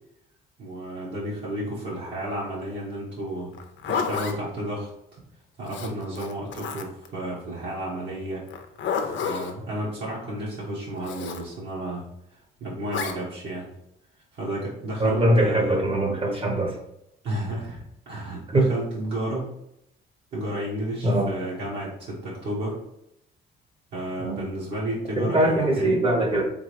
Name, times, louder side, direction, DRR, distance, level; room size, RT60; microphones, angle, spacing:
voice 1, 0.6-3.5 3.8-4.9 5.6-8.4 9.0-12.1 12.6-13.7 14.3-15.8 17.2-19.5 20.3-22.8 23.9-26.0, right 1 dB, 60° right, -8 dB, 1.6 m, -32 dB
Zipper (clothing), 3.5-4.4 5.7-7.1 8.5-9.6 11.0-11.4 12.9-13.2, left 6 dB, 70° left, 0.6 m, -30 dB
voice 2, 15.0-16.8 18.5-18.7 21.0-21.3 24.2-24.4 25.2-26.5, right 1 dB, 30° right, 2 dB, 1.1 m, -22 dB
3.8 x 3.6 x 3.4 m, 0.79 s
cardioid pair, 90°, 20 cm